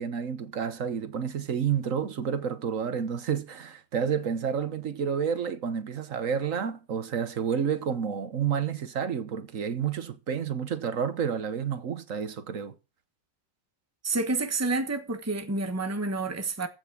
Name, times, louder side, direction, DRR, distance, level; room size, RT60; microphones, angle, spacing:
voice 1, 0.0-12.7, right 7 dB, 70° right, 1.5 m, -30 dB
voice 2, 14.0-16.7, right 3 dB, 10° right, 1.2 m, -29 dB
15.0 x 6.3 x 6.1 m
omnidirectional pair, 1.4 m